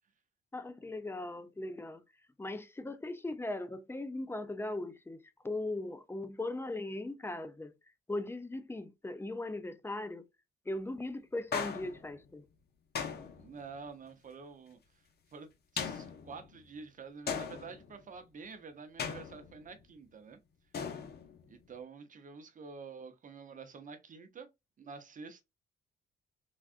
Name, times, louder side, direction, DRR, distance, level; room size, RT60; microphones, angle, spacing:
voice 1, 0.5-2.0 2.4-5.2 5.4-7.7 8.1-10.3 10.7-12.4, left 2 dB, 10° left, 0.5 m, -39 dB
sound 1, 11.5-12.3 12.9-13.8 15.8-16.6 17.3-18.0 19.0-19.8 20.7-21.6, left 6 dB, 55° left, 0.8 m, -39 dB
voice 2, 13.4-15.0 15.3-20.4 21.5-24.5 24.8-25.4, right 5 dB, 40° right, 0.7 m, -48 dB
3.4 x 2.4 x 2.5 m
cardioid pair, 90°, 20 cm